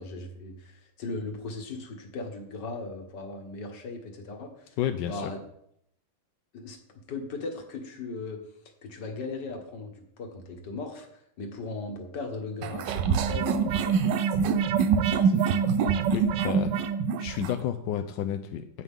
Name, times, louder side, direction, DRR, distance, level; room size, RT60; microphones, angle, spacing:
voice 1, 0.0-5.4 6.5-6.8 7.1-8.5 8.8-14.2 15.0-15.6, left 3 dB, 55° left, 4 dB, 2.0 m, -38 dB
voice 2, 4.8-5.3 16.1-16.7 17.2-18.8, left 10 dB, 75° left, 8 dB, 1.1 m, -31 dB
sound 1, 12.6-17.6, right 6 dB, 70° right, 1.2 m, -25 dB
16.5 x 5.5 x 3.7 m, 0.72 s
omnidirectional pair, 2.3 m